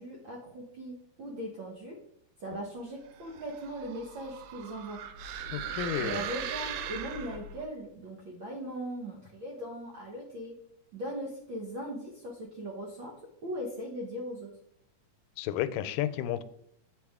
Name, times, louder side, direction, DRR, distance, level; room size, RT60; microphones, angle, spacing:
voice 1, 0.0-1.9 2.4-5.0 6.0-10.5 10.9-13.1 13.4-14.5, equal, 65° right, -2 dB, 1.2 m, -39 dB
sound 1, 3.2-7.7, right 8 dB, 90° right, 2.3 m, -39 dB
voice 2, 5.5-6.2 15.4-16.4, left 11 dB, 85° left, 13 dB, 2.2 m, -32 dB
8.9 x 5.1 x 3.5 m, 0.74 s
omnidirectional pair, 3.8 m